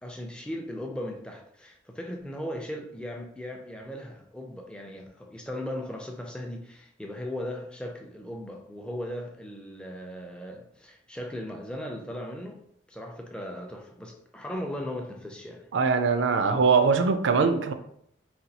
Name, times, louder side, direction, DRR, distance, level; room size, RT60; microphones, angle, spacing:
voice 1, 0.0-12.6 12.9-15.7, left 1 dB, 5° left, 0.4 m, -37 dB
voice 2, 15.7-17.7, right 5 dB, 80° right, 0.4 m, -22 dB
4.1 x 2.3 x 2.7 m
head